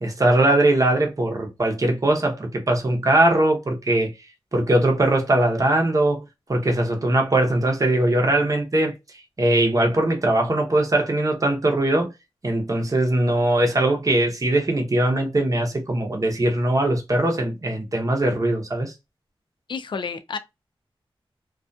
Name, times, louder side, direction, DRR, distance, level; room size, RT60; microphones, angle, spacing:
voice 1, 0.0-4.1 4.5-8.9 9.4-12.1 12.4-18.9, right 1 dB, 35° right, 0.7 m, -21 dB
voice 2, 19.7-20.4, left 5 dB, 55° left, 0.4 m, -30 dB
2.4 x 2.2 x 2.6 m
wide cardioid pair, 80°, 10 cm